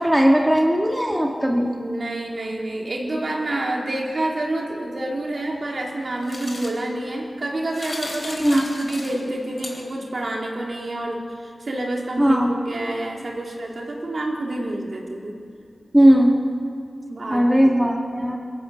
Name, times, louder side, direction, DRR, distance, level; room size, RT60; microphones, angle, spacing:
voice 1, 0.0-1.7 8.4-8.6 12.2-12.5 15.9-16.4 17.3-18.4, equal, 10° right, 0 dB, 2.0 m, -17 dB
voice 2, 1.7-12.4 12.7-15.3 17.1-17.7, right 1 dB, 60° right, -1 dB, 3.6 m, -28 dB
sound 1, 5.5-10.2, left 2 dB, 50° left, 3.9 m, -38 dB
22.0 x 17.0 x 7.2 m, 2.4 s
wide cardioid pair, 75°, 0 cm